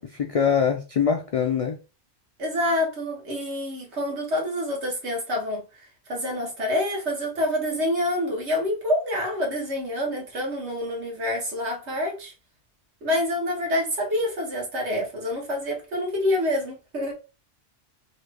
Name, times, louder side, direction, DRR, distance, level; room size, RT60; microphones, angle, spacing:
voice 1, 0.0-1.8, left 7 dB, 70° left, 0.3 m, -23 dB
voice 2, 2.4-5.6 6.1-12.3 13.0-17.1, left 1 dB, 80° right, 1.5 m, -27 dB
3.2 x 2.5 x 3.3 m
omnidirectional pair, 1.1 m